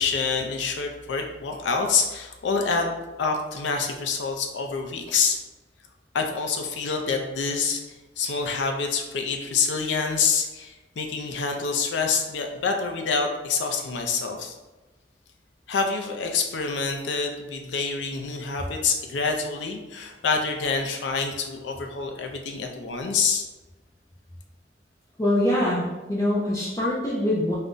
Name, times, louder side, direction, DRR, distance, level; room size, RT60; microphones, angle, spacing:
voice 1, 0.0-5.4 6.1-7.8 8.2-14.5 15.7-23.4, left 5 dB, 80° left, 3 dB, 0.4 m, -26 dB
voice 2, 25.2-27.6, left 1 dB, 15° left, -6 dB, 0.4 m, -24 dB
2.5 x 2.1 x 3.6 m, 1.1 s
head